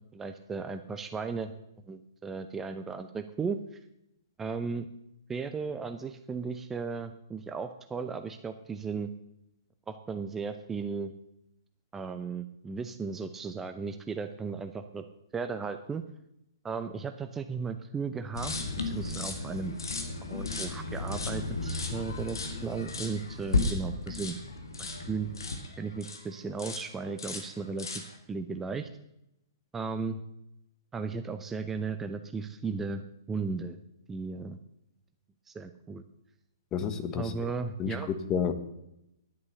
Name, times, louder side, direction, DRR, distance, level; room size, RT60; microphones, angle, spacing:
voice 1, 0.1-1.5 1.9-3.8 4.4-4.9 5.3-9.1 9.9-11.1 11.9-15.0 15.3-16.0 16.6-18.5 18.8-19.7 20.2-24.3 24.8-25.3 25.8-28.0 28.3-28.9 29.7-30.2 30.9-33.0 33.3-33.8 34.1-34.6 35.5-36.0 37.1-38.1, right 5 dB, 10° right, 8 dB, 0.6 m, -35 dB
sound 1, 18.3-26.2 26.6-26.9 27.2-28.2, left 3 dB, 75° left, 2.1 m, -34 dB
voice 2, 36.7-37.3 37.8-38.5, left 7 dB, 25° left, 9 dB, 1.2 m, -30 dB
11.0 x 9.6 x 6.7 m, 0.83 s
figure-of-eight pair, 120°, 2 cm